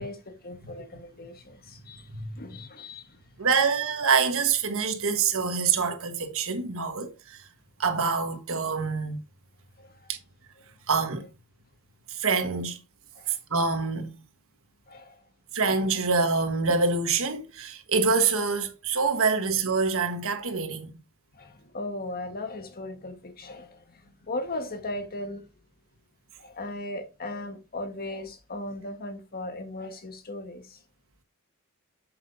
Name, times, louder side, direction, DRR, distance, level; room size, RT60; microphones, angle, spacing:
voice 1, 0.0-3.2 9.8-10.1 13.1-13.3 14.9-15.2 19.2-19.3 21.3-25.4 26.4-30.8, left 2 dB, 45° left, 1.5 m, -38 dB
voice 2, 2.1-2.4 3.4-7.5 7.8-9.2 10.1-10.2 10.9-11.2 12.1-12.8 13.3-14.2 15.5-20.9, right 5 dB, 65° right, 1.5 m, -26 dB
7.7 x 7.7 x 2.7 m
head